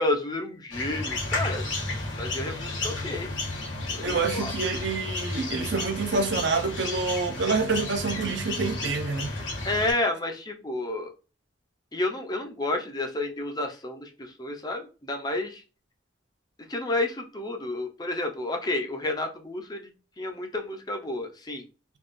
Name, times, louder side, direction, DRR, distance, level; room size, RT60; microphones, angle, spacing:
voice 1, 0.0-1.7 2.2-3.3 3.9-4.5 9.6-11.1 11.9-15.6 16.7-19.8 20.2-21.6, left 2 dB, 20° left, 0.5 m, -30 dB
sound 1, 0.7-9.9, left 2 dB, 75° left, 1.4 m, -32 dB
voice 2, 4.0-9.3, right 4 dB, 60° right, 0.6 m, -27 dB
3.5 x 2.3 x 2.5 m
head